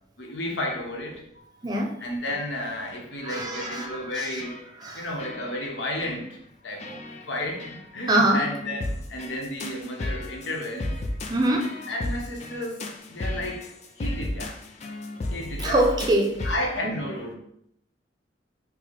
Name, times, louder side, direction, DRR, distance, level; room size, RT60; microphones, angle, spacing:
voice 1, 0.2-1.4 2.0-4.6 4.9-7.0 7.3-10.9 11.9-14.6 15.3-15.9 16.4-17.3, left 1 dB, 80° left, 0 dB, 0.8 m, -32 dB
voice 2, 1.6-1.9 3.2-4.4 4.8-5.1 6.9-7.0 8.1-8.4 11.3-11.7 15.6-16.4 16.8-17.0, right 1 dB, 20° right, 1 dB, 0.4 m, -24 dB
sound 1, 2.9-3.3 3.6-4.1 4.4-4.9 5.2-5.7 6.0-6.2 6.8-7.3 7.6-7.8 8.4-16.6, left 1 dB, 40° left, 0.4 m, -34 dB
4.6 x 2.0 x 2.9 m, 0.72 s
head